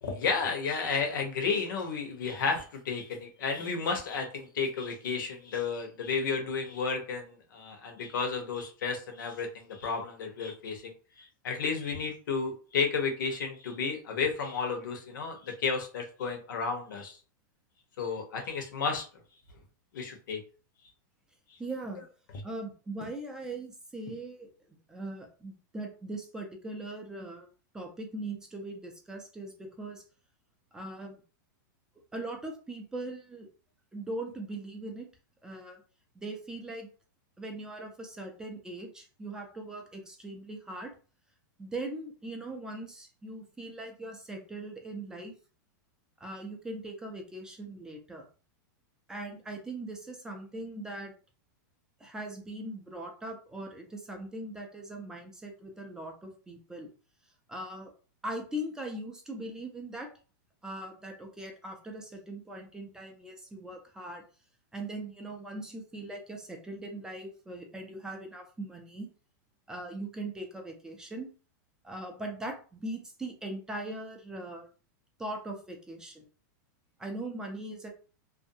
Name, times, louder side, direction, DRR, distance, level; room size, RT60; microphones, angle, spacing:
voice 1, 0.0-10.9 11.2-17.2 18.0-19.1 19.9-20.4, left 5 dB, 85° left, 3 dB, 0.9 m, -32 dB
voice 2, 21.6-22.0 22.4-24.5 24.9-27.5 27.7-30.0 30.7-31.1 32.1-33.5 33.9-35.1 35.4-35.8 36.2-36.9 37.4-40.9 41.6-45.3 46.2-48.3 49.1-51.1 52.0-56.9 57.5-57.9 58.2-60.1 60.6-64.2 64.7-69.1 69.7-71.3 71.8-74.7 75.2-76.3 77.0-77.9, right 1 dB, 5° right, 2 dB, 0.3 m, -40 dB
2.5 x 2.2 x 2.6 m, 0.37 s
supercardioid pair, 160°, 11 cm